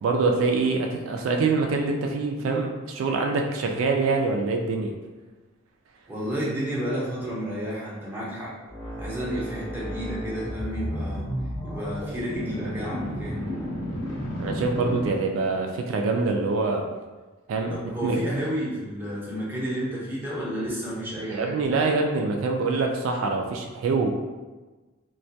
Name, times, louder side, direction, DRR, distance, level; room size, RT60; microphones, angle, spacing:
voice 1, 0.0-4.9 14.4-16.9 17.5-17.7 18.0-18.2 21.3-24.1, right 3 dB, 80° right, 3 dB, 0.3 m, -25 dB
voice 2, 6.1-8.5 9.0-11.3 11.6-13.4 17.7-21.6, equal, 10° right, -7 dB, 0.6 m, -31 dB
sound 1, 8.7-15.6, equal, 25° left, 0.7 m, -33 dB
2.2 x 2.2 x 2.6 m, 1.2 s
head